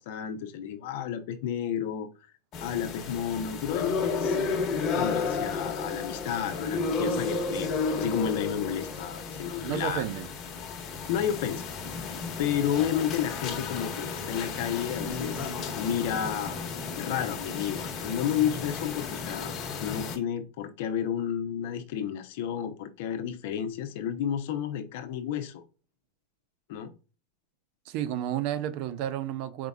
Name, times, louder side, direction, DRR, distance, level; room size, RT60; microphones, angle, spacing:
voice 1, 0.0-2.1 2.6-4.4 4.9-10.0 11.1-11.6 12.4-16.6 16.9-19.5 19.8-25.6 26.7-26.9, left 9 dB, 65° left, 0.8 m, -31 dB
sound 1, 2.5-20.2, left 4 dB, 35° left, 1.4 m, -33 dB
voice 2, 9.6-10.3 27.9-29.7, right 11 dB, 55° right, 0.5 m, -31 dB
4.5 x 3.8 x 2.3 m
supercardioid pair, 130°, 0 cm